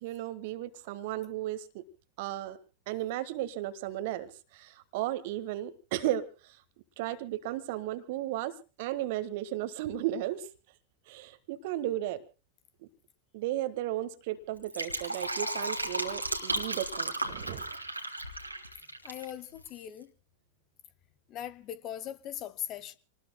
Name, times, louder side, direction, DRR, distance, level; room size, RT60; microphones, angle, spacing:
voice 1, 0.0-1.8 2.2-2.6 2.9-6.6 7.0-8.5 8.8-10.5 11.1-12.2 13.3-17.6, right 13 dB, 50° right, 1.5 m, -34 dB
Fill (with liquid), 14.5-19.3 19.6-19.7, right 2 dB, 85° right, 2.2 m, -34 dB
voice 2, 19.0-20.1 21.3-22.9, left 10 dB, 35° left, 1.2 m, -40 dB
28.0 x 20.0 x 2.2 m
figure-of-eight pair, 90°, 0 cm